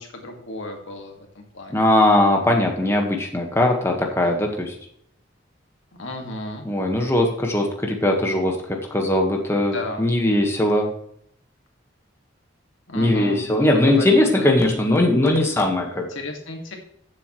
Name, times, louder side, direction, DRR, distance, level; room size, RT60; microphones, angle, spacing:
voice 1, 0.0-1.9 6.0-6.6 9.5-10.0 12.9-14.5 16.0-16.8, left 2 dB, 85° left, 2 dB, 1.9 m, -34 dB
voice 2, 1.7-4.7 6.6-8.6 8.9-10.9 12.9-16.1, left 1 dB, 15° left, 1 dB, 1.4 m, -20 dB
14.5 x 7.5 x 3.1 m, 0.68 s
head